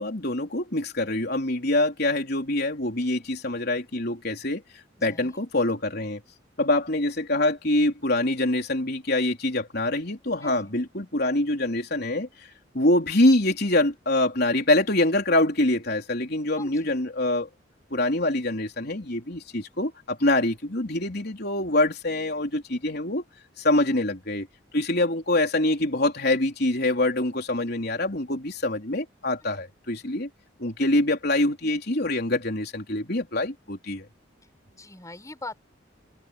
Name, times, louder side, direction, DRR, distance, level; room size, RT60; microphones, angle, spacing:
voice 1, 0.0-4.6 5.0-6.2 6.6-12.3 12.7-17.5 17.9-23.2 23.6-24.5 24.7-30.3 30.6-34.1, left 1 dB, 55° left, 4.0 m, -25 dB
voice 2, 5.0-5.4 10.4-10.8 16.6-17.0 34.7-35.6, left 2 dB, 15° left, 7.0 m, -42 dB
head